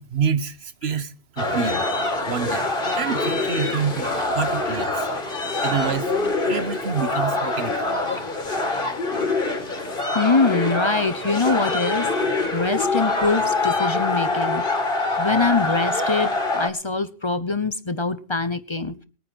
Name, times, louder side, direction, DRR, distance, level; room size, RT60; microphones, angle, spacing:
voice 1, 0.0-1.8 2.3-2.6 2.9-5.1 5.6-6.1 6.5-7.9, right 7 dB, 85° right, 1.3 m, -27 dB
sound 1, 1.4-16.7, left 2 dB, 55° left, 2.2 m, -24 dB
voice 2, 10.1-12.1 12.5-14.6 15.2-18.9, left 3 dB, 30° left, 0.8 m, -23 dB
21.5 x 9.3 x 4.5 m
omnidirectional pair, 1.0 m